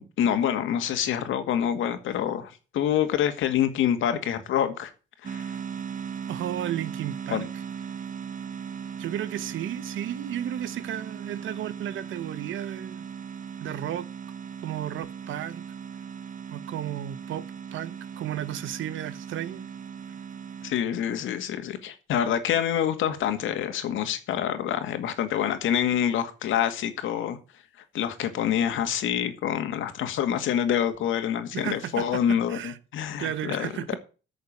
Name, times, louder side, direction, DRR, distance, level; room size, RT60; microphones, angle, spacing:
voice 1, 0.0-4.9 5.2-5.6 7.3-7.4 20.6-27.4 27.9-34.0, left 9 dB, 80° left, 2.1 m, -26 dB
sound 1, 5.2-20.7, right 7 dB, 45° right, 1.1 m, -38 dB
voice 2, 6.3-7.5 9.0-13.0 13.6-14.1 14.6-15.6 16.5-19.7 31.5-32.8 33.2-34.0, right 11 dB, 75° right, 1.2 m, -33 dB
9.7 x 6.5 x 8.9 m
cardioid pair, 90°, 20 cm